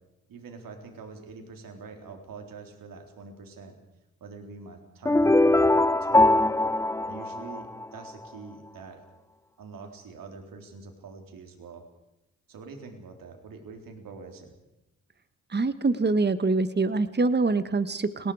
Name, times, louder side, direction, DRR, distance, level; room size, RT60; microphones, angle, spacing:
voice 1, 0.3-3.8 4.2-6.5 7.0-9.0 9.6-11.8 12.5-14.5, right 4 dB, 70° right, 4 dB, 3.9 m, -44 dB
sound 1, 5.0-8.1, left 2 dB, 10° left, 0.7 m, -21 dB
voice 2, 15.5-18.3, right 3 dB, 30° right, 12 dB, 1.5 m, -25 dB
30.0 x 19.5 x 4.9 m, 0.92 s
supercardioid pair, 55°, 35 cm